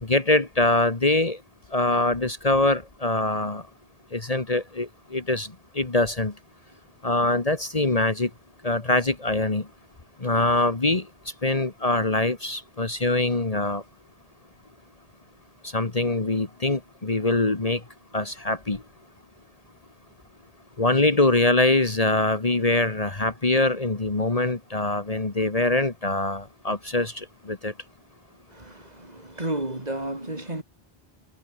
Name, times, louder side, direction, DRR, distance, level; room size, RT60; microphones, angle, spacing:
voice 1, 0.0-1.4 1.7-3.6 4.1-5.5 5.8-6.3 7.0-8.3 8.6-9.6 10.2-11.0 11.4-13.8 15.7-17.8 18.1-18.8 20.8-27.7, left 2 dB, 35° left, 1.7 m, -23 dB
voice 2, 28.5-30.6, right 1 dB, 40° right, 3.8 m, -32 dB
omnidirectional pair, 1.0 m